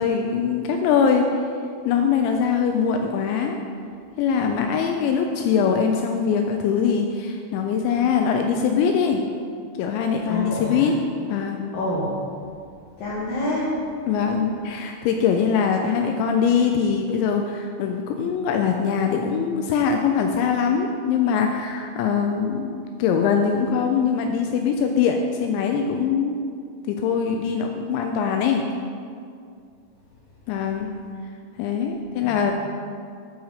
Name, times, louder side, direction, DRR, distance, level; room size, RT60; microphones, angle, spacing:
voice 1, 0.0-1.3 1.9-3.6 4.2-9.2 9.8-11.0 11.3-11.7 14.1-26.4 26.8-28.6 30.5-30.9 31.6-32.5, left 6 dB, 85° left, 3 dB, 2.6 m, -22 dB
voice 2, 10.3-10.9 11.7-12.1 13.0-13.7 32.2-32.4, left 1 dB, 70° left, -8 dB, 2.1 m, -27 dB
9.0 x 5.7 x 5.6 m, 2.3 s
omnidirectional pair, 5.8 m